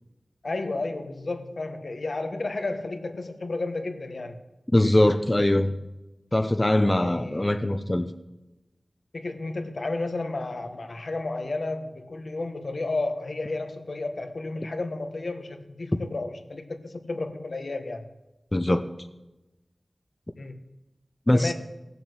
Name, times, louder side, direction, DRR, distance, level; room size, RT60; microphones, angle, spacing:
voice 1, 0.4-4.4 6.9-7.5 9.1-18.1 20.4-20.6 21.3-21.5, left 2 dB, 70° left, 6 dB, 1.3 m, -32 dB
voice 2, 4.7-5.7 6.3-8.1 15.9-16.0 18.5-18.8 21.3-21.5, left 1 dB, 25° left, 8 dB, 0.8 m, -22 dB
15.5 x 7.2 x 8.0 m, 1.0 s
wide cardioid pair, 65°, 0 cm